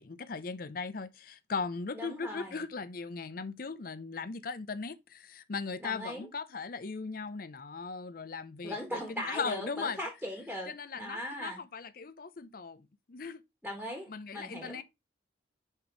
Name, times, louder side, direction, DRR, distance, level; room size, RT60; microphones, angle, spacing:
voice 1, 0.0-10.0 10.7-13.4 14.1-14.8, left 4 dB, 50° left, 0.5 m, -38 dB
voice 2, 1.9-2.6 5.8-6.3 8.6-11.6 13.6-14.8, left 1 dB, 5° right, 1.5 m, -39 dB
5.1 x 4.4 x 4.6 m
head